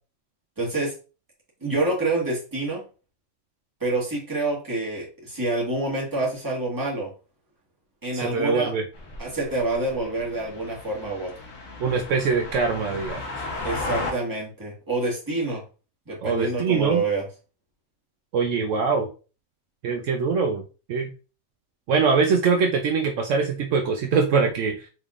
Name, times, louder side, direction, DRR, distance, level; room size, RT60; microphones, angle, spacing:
voice 1, 0.6-0.9 1.6-2.8 3.8-7.1 8.0-8.7 9.2-11.3 13.6-15.6 16.1-17.3, right 2 dB, 15° right, -5 dB, 1.6 m, -27 dB
voice 2, 8.2-8.8 11.8-13.5 16.2-17.0 18.3-19.1 19.8-20.6 20.9-21.1 21.9-24.9, right 5 dB, 70° right, 3 dB, 0.9 m, -23 dB
sound 1, 8.9-14.1, left 2 dB, 70° left, 1.3 m, -35 dB
4.4 x 3.5 x 2.4 m, 0.35 s
omnidirectional pair, 1.4 m